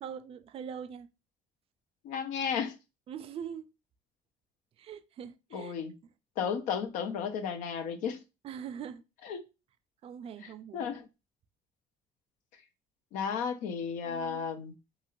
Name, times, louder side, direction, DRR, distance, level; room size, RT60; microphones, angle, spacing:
voice 1, 0.0-1.1 3.1-3.7 4.8-5.8 8.4-9.0 10.0-10.9 14.0-14.5, right 8 dB, 50° right, 0.4 m, -42 dB
voice 2, 2.0-2.8 5.5-5.9 6.4-8.2 9.2-9.4 10.4-11.1 13.1-14.7, left 7 dB, 85° left, 0.5 m, -34 dB
3.0 x 2.8 x 2.4 m
cardioid pair, 100°, 13 cm